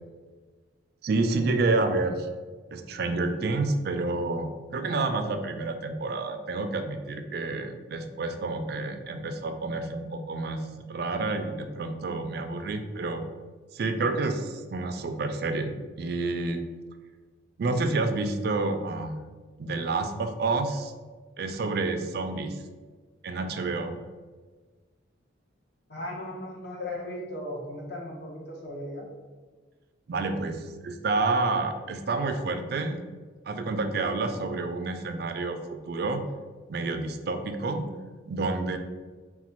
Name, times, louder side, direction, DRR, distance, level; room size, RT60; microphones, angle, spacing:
voice 1, 1.0-2.3 2.7-13.2 13.7-16.6 17.6-19.2 19.6-20.9 21.4-22.6 23.2-24.0 30.1-33.1 33.5-36.2 36.7-37.9 38.3-38.8, right 3 dB, 50° right, 7 dB, 0.3 m, -29 dB
voice 2, 25.9-29.1, left 1 dB, 55° left, -2 dB, 0.9 m, -37 dB
4.0 x 2.2 x 4.4 m, 1.4 s
head